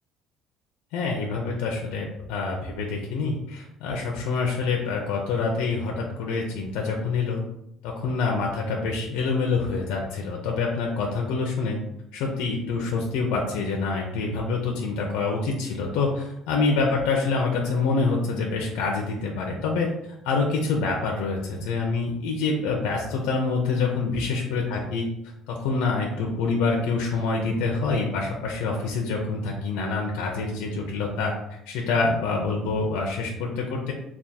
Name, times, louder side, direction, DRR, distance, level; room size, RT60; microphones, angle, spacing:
voice 1, 0.9-7.4 7.8-11.8 12.1-19.9 20.2-25.0 25.5-33.9, left 4 dB, 85° left, 0 dB, 0.6 m, -26 dB
3.5 x 2.3 x 4.2 m, 0.82 s
cardioid pair, 135°, 0 cm